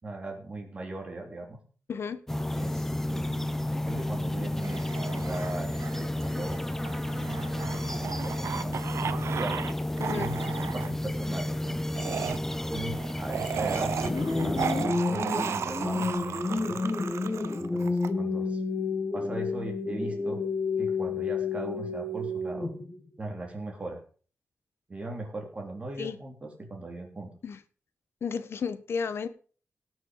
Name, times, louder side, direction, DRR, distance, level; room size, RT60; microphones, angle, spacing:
voice 1, 0.0-1.6 2.5-3.6 3.8-6.6 8.2-8.8 9.4-9.5 10.1-12.2 12.7-13.9 14.4-16.8 17.6-18.6 19.1-20.4 20.8-22.7 23.2-24.0 24.9-27.3, right 2 dB, 25° right, 2 dB, 3.1 m, -39 dB
voice 2, 1.9-2.2 10.0-10.3 26.0-26.2 27.4-27.6 28.2-29.3, left 6 dB, 60° left, 13 dB, 1.1 m, -32 dB
sound 1, 2.3-14.9, left 1 dB, 10° left, 0.5 m, -32 dB
sound 2, 4.6-9.7 10.0-10.9 11.9-18.1, right 7 dB, 80° right, 0.8 m, -35 dB
sound 3, 14.0-23.0, left 3 dB, 30° left, 1.7 m, -30 dB
17.5 x 6.3 x 5.4 m, 0.41 s
wide cardioid pair, 135°, 5 cm